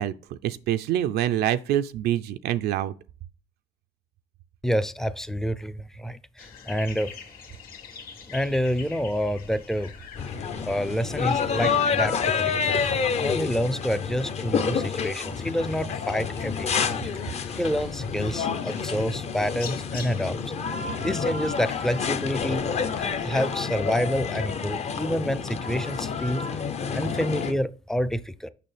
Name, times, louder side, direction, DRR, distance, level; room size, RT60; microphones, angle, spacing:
voice 1, 0.0-2.9, right 12 dB, 70° right, 0.4 m, -26 dB
voice 2, 4.6-7.1 8.3-9.9 10.7-12.7 13.2-17.1 17.6-20.4 21.0-22.7 22.9-26.5 26.9-28.5, equal, 5° left, 0.4 m, -28 dB
sound 1, 6.4-23.4, left 6 dB, 60° left, 1.6 m, -46 dB
sound 2, 10.2-27.5, left 6 dB, 40° left, 0.6 m, -28 dB
6.7 x 5.6 x 3.3 m
cardioid pair, 110°, 17 cm